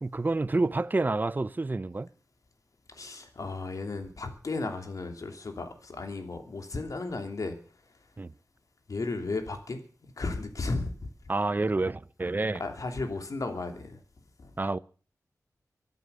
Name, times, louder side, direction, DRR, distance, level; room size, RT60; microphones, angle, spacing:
voice 1, 0.0-2.1 8.2-8.3 11.3-12.6 14.6-14.8, right 2 dB, 30° right, 0.7 m, -28 dB
voice 2, 2.9-7.6 8.9-9.8 10.2-11.1 12.6-14.0 14.4-14.5, left 3 dB, 60° left, 2.9 m, -34 dB
24.0 x 8.2 x 6.9 m
wide cardioid pair, 100°, 6 cm